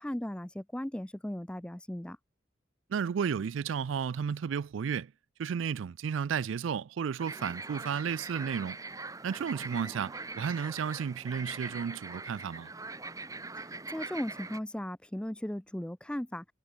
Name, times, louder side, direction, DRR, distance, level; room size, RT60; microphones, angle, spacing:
voice 1, 0.0-2.2 13.9-16.4, left 1 dB, 5° left, 0.4 m, -37 dB
voice 2, 2.9-5.1 5.4-8.8 9.2-12.7, right 7 dB, 85° right, 0.4 m, -33 dB
sound 1, 7.2-14.6, right 3 dB, 15° right, 1.4 m, -42 dB
head